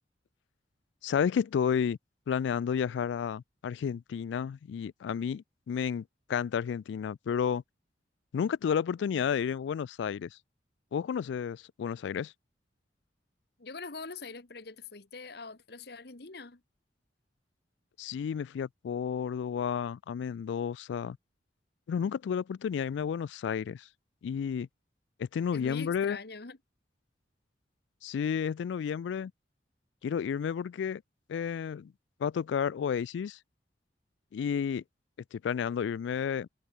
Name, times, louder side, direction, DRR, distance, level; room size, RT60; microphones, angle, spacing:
voice 1, 1.0-2.0 2.3-7.6 8.3-10.4 10.9-12.3 18.0-21.2 21.9-23.9 24.2-24.7 25.2-26.2 28.0-29.3 30.0-31.0 31.3-31.9 32.2-33.4 34.3-34.8 35.3-36.5, left 7 dB, 75° left, 0.3 m, -31 dB
voice 2, 13.6-16.6 25.5-26.6, left 4 dB, 60° left, 1.5 m, -43 dB
head